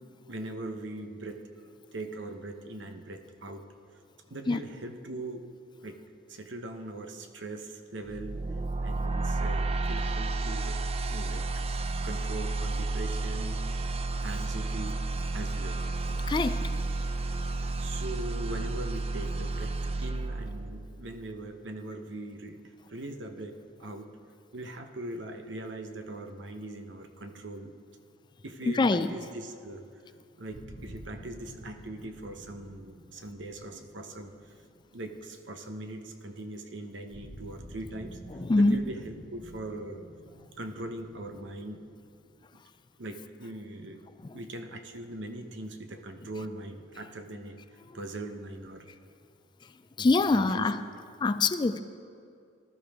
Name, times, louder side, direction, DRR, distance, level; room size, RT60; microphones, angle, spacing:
voice 1, 0.3-1.4 1.9-3.6 4.3-5.5 5.8-8.4 8.8-10.8 11.1-11.5 12.0-13.9 14.2-15.0 15.3-15.9 17.8-22.6 22.9-24.1 24.5-27.7 28.4-29.8 30.3-34.3 34.9-38.2 38.5-40.1 40.6-41.8 42.5-42.6 43.0-44.0 44.3-47.6 47.9-48.9 50.0-50.7, right 2 dB, 70° right, 6 dB, 1.0 m, -41 dB
sound 1, 8.1-21.1, right 3 dB, 30° right, 0.5 m, -31 dB
voice 2, 16.3-16.6 28.7-29.1 38.4-38.8 50.0-50.8 51.2-51.8, left 3 dB, 25° left, 12 dB, 0.3 m, -24 dB
sound 2, 30.5-35.5 37.1-42.8, equal, 55° right, 1.9 m, -50 dB
19.5 x 12.5 x 3.6 m, 2.4 s
head